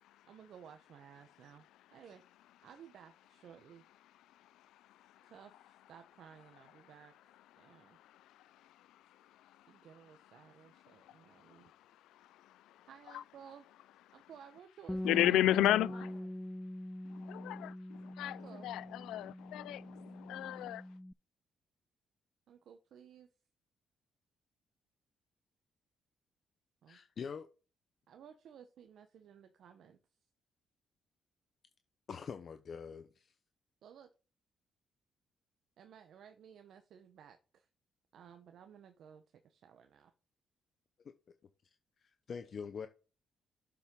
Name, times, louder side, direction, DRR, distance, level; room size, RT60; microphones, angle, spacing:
voice 1, 0.3-2.2 2.6-3.8 5.2-8.0 9.7-11.7 12.9-13.7 14.1-16.3 18.2-18.7 22.5-23.3 26.8-27.0 28.1-30.0 33.8-34.1 35.8-37.7 38.1-40.1, right 8 dB, 70° right, 0.9 m, -57 dB
Bass guitar, 14.9-21.1, left 1 dB, 5° left, 0.3 m, -43 dB
voice 2, 15.0-16.1 17.3-17.7 18.2-19.8 20.3-20.8, left 14 dB, 85° left, 0.4 m, -31 dB
voice 3, 26.9-27.5 32.1-33.3 42.0-42.9, left 6 dB, 50° left, 0.8 m, -44 dB
7.3 x 7.2 x 3.8 m
cardioid pair, 90°, 0 cm